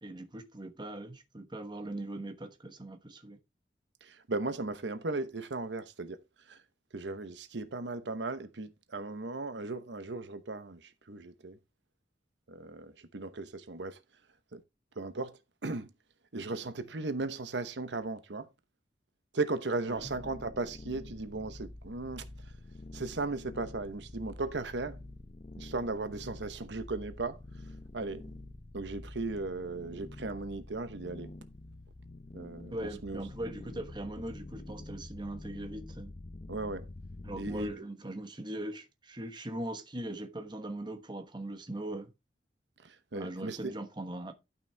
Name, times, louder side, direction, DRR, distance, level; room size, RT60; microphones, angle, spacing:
voice 1, 0.0-3.4 19.9-20.1 32.7-36.1 37.2-42.1 43.1-44.3, right 1 dB, 25° right, 1.1 m, -40 dB
voice 2, 4.0-6.2 6.5-6.6 6.9-11.6 12.5-14.0 14.5-14.6 15.0-15.9 16.3-18.5 19.3-22.3 22.9-25.0 25.6-27.4 27.9-28.3 28.7-31.3 32.3-33.2 36.5-36.9 37.3-37.7 42.8-43.7, right 3 dB, 90° right, 0.9 m, -37 dB
sound 1, 19.9-37.7, left 1 dB, 35° left, 0.7 m, -47 dB
12.0 x 6.1 x 3.4 m
head